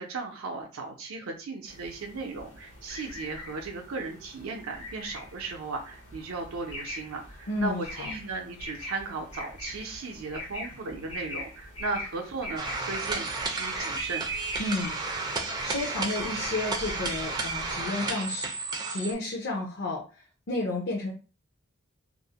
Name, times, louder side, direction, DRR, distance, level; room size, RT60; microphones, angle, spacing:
voice 1, 0.0-14.3, right 3 dB, 80° right, 2 dB, 0.5 m, -36 dB
sound 1, 1.7-17.9, left 1 dB, 80° left, 1.0 m, -43 dB
voice 2, 7.5-8.1 14.6-15.2 15.6-18.5 18.9-21.1, left 2 dB, 55° left, -1 dB, 0.5 m, -32 dB
sound 2, 12.6-19.1, right 3 dB, 20° right, 0.3 m, -32 dB
2.4 x 2.0 x 2.8 m, 0.34 s
head